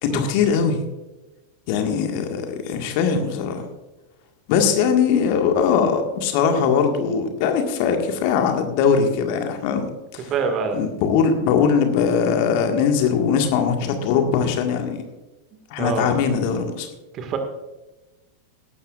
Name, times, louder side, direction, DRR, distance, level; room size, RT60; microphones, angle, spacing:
voice 1, 0.0-0.8 1.7-3.7 4.5-10.3 10.8-15.0 15.7-16.9, left 6 dB, 45° left, 5 dB, 1.8 m, -21 dB
voice 2, 10.3-10.8 15.8-16.2 17.1-17.4, right 5 dB, 30° right, 6 dB, 1.9 m, -25 dB
18.0 x 12.0 x 2.5 m, 1.1 s
figure-of-eight pair, 90°, 0 cm